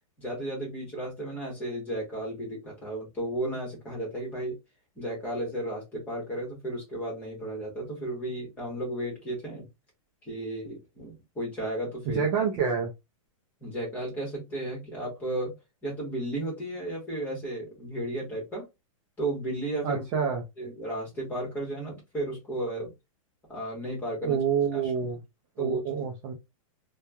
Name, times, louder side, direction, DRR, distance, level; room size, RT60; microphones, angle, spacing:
voice 1, 0.2-4.6 5.0-9.7 10.2-12.3 13.6-15.5 15.8-18.7 19.2-20.3 20.6-22.9 23.5-24.4 24.7-25.1 25.6-25.8, right 1 dB, 10° left, 1.1 m, -34 dB
voice 2, 12.1-12.9 19.8-20.4 24.2-25.2 25.6-26.3, right 7 dB, 20° right, 0.3 m, -27 dB
3.0 x 2.2 x 2.2 m
supercardioid pair, 175°, 17 cm